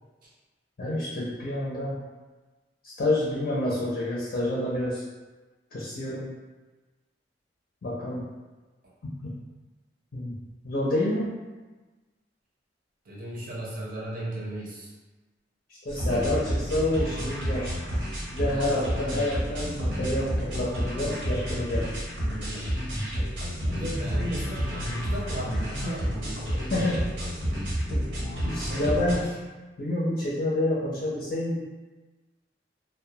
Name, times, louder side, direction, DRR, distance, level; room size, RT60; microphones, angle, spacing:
voice 1, 0.8-2.0 2.8-5.0 5.7-6.3 7.8-8.2 9.2-9.3 10.1-10.4 10.6-11.3 15.8-17.8 18.3-21.9 26.7-27.0 28.4-29.2 29.8-31.6, left 1 dB, 55° left, -7 dB, 0.5 m, -28 dB
voice 2, 13.1-14.9 23.7-26.2 28.7-29.3, equal, 50° right, -4 dB, 0.6 m, -35 dB
sound 1, 15.9-29.2, equal, 85° right, 0.9 m, -30 dB
2.1 x 2.1 x 2.7 m, 1.2 s
head